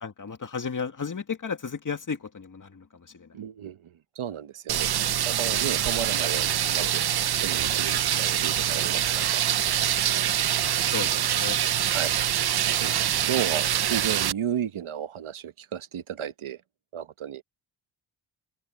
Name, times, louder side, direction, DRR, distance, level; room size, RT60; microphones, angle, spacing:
voice 1, 0.0-2.9 3.1-3.3 10.6-11.6, left 5 dB, 40° left, 2.0 m, -34 dB
voice 2, 3.3-4.9 5.3-7.0 7.4-9.4 11.9-12.1 12.8-12.9 13.3-16.6 16.9-17.4, right 9 dB, 90° right, 1.1 m, -33 dB
sound 1, 4.7-14.3, right 10 dB, 55° right, 0.6 m, -25 dB
open air
wide cardioid pair, 145°, 48 cm